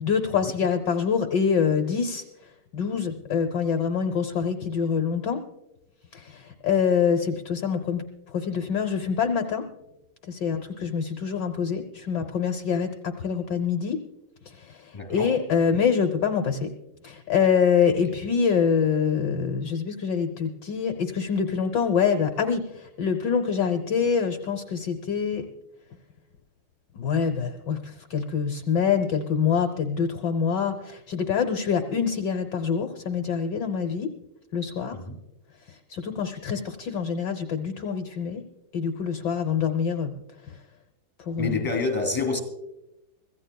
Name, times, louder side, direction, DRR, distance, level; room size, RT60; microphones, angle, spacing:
voice 1, 0.0-2.2 2.7-5.4 6.1-8.0 8.3-9.6 10.3-14.0 14.6-14.8 15.1-16.7 17.0-22.7 23.0-25.5 26.9-34.1 34.5-35.0 35.9-38.4 38.7-40.1 41.3-41.6, left 6 dB, 65° left, 6 dB, 1.5 m, -25 dB
voice 2, 14.9-15.3 34.9-35.2 41.4-42.4, left 3 dB, 10° left, 4 dB, 3.0 m, -27 dB
25.0 x 15.5 x 2.3 m, 0.91 s
omnidirectional pair, 2.2 m